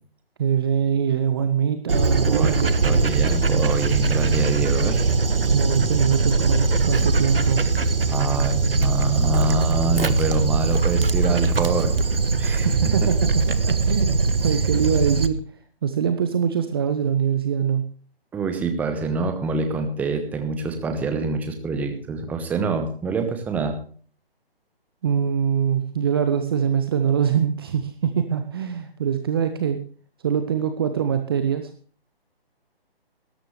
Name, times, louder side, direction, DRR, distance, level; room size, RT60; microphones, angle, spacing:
voice 1, 0.4-2.7 5.5-7.6 12.6-13.2 13.5-15.4 15.8-17.9 25.0-29.8 30.2-31.7, right 8 dB, 25° right, 9 dB, 0.9 m, -23 dB
Dog, 1.9-15.3, right 3 dB, 65° right, 1.4 m, -21 dB
voice 2, 2.3-5.1 8.1-11.9 12.4-12.7 18.3-23.8, right 4 dB, 5° right, 7 dB, 1.2 m, -26 dB
18.0 x 13.5 x 3.2 m, 0.43 s
figure-of-eight pair, 140°, 31 cm